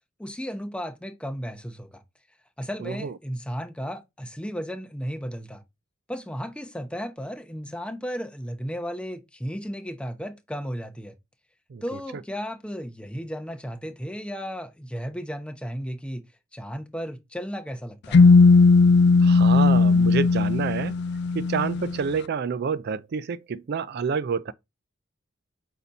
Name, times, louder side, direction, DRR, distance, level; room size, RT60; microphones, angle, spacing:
voice 1, 0.2-2.0 2.6-5.6 6.1-11.2 11.8-16.2 16.5-18.2, equal, 5° left, 0.9 m, -34 dB
voice 2, 2.8-3.1 11.7-11.8 19.2-21.0 21.3-24.5, right 5 dB, 55° right, 0.4 m, -28 dB
sound 1, 18.1-22.0, left 4 dB, 55° left, 0.4 m, -17 dB
8.2 x 2.8 x 5.2 m
head